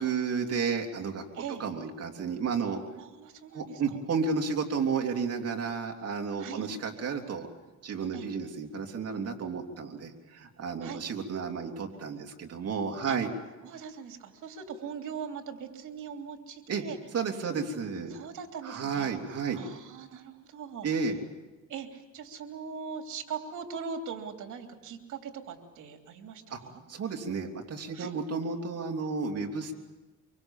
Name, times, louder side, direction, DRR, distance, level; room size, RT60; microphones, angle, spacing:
voice 1, 0.0-2.8 3.5-7.5 7.8-13.3 16.7-16.8 17.1-18.2 18.6-19.6 20.8-21.2 26.5-26.6 26.9-29.7, right 5 dB, 55° right, 2 dB, 3.1 m, -32 dB
voice 2, 3.0-4.0 6.4-6.7 8.1-8.3 10.8-11.0 13.0-13.2 13.6-17.0 17.5-17.7 18.1-19.1 19.5-20.9 21.7-26.8 27.9-28.1, right 6 dB, 75° right, 4 dB, 3.2 m, -41 dB
25.0 x 24.0 x 7.3 m, 1.2 s
cardioid pair, 90°, 30 cm